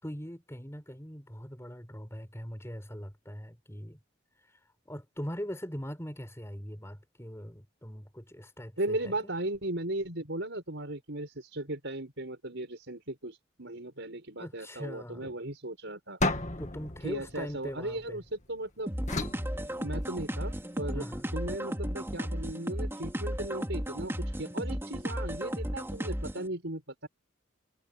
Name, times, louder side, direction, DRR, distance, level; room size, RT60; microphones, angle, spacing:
voice 1, 0.0-4.0 4.9-9.3 14.4-15.4 16.6-18.2 20.9-21.3, equal, 15° left, 5.4 m, -41 dB
voice 2, 8.8-16.2 17.0-18.9 19.8-21.0 21.3-27.1, right 1 dB, 65° right, 6.5 m, -37 dB
sound 1, 16.2-18.4 19.1-20.5, left 2 dB, 35° left, 1.9 m, -34 dB
sound 2, 18.9-26.5, equal, 10° right, 3.4 m, -34 dB
head